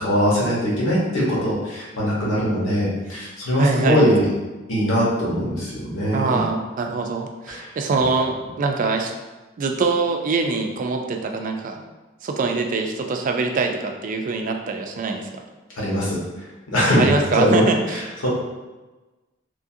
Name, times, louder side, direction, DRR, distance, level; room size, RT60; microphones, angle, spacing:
voice 1, 0.0-4.2 4.7-6.4 7.5-7.7 15.8-17.1 17.3-18.3, equal, 80° left, -6 dB, 1.1 m, -21 dB
voice 2, 3.6-4.0 6.1-9.1 9.6-11.8 12.2-15.3 17.0-18.0, right 4 dB, 45° right, 4 dB, 0.3 m, -23 dB
3.1 x 2.5 x 2.6 m, 1.2 s
head